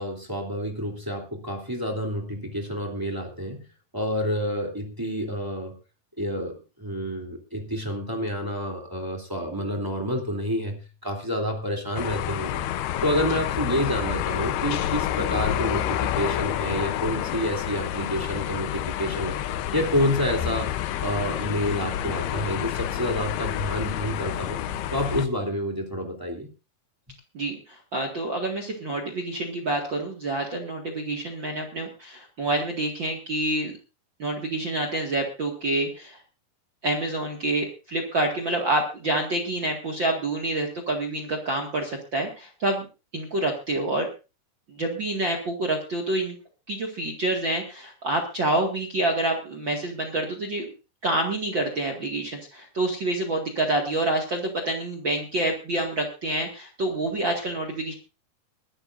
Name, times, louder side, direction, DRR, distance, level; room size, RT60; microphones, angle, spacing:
voice 1, 0.0-3.6 3.9-5.8 6.2-12.6 13.0-19.4 19.7-20.7 21.0-24.6 24.9-26.5, equal, 5° right, 1 dB, 2.3 m, -28 dB
sound 1, 12.0-25.3, left 11 dB, 90° left, 2.9 m, -29 dB
voice 2, 27.3-33.7 34.2-36.2 36.8-42.9 43.1-44.1 44.7-46.4 46.7-50.6 51.0-57.9, right 1 dB, 40° right, 1 dB, 2.0 m, -27 dB
22.0 x 12.5 x 2.6 m, 0.31 s
omnidirectional pair, 4.5 m